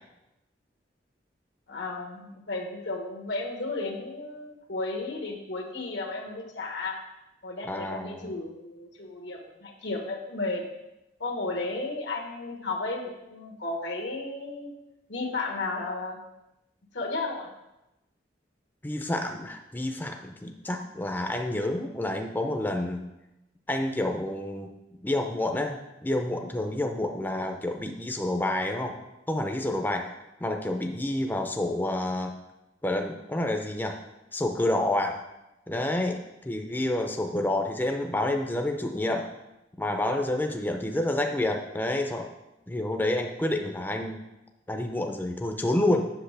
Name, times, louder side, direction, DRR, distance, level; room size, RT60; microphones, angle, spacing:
voice 1, 1.7-7.0 7.4-10.6 11.2-14.7 15.1-16.2 16.9-17.5, left 3 dB, 90° left, 1 dB, 1.4 m, -33 dB
voice 2, 7.7-8.3 18.8-23.0 23.7-24.7 25.0-28.9 29.3-30.1 30.4-32.4 32.8-34.0 34.3-35.2 35.7-36.2 36.5-39.3 39.8-42.3 42.7-44.2 44.7-46.1, left 1 dB, 10° left, 3 dB, 0.5 m, -29 dB
7.9 x 6.5 x 3.3 m, 0.94 s
head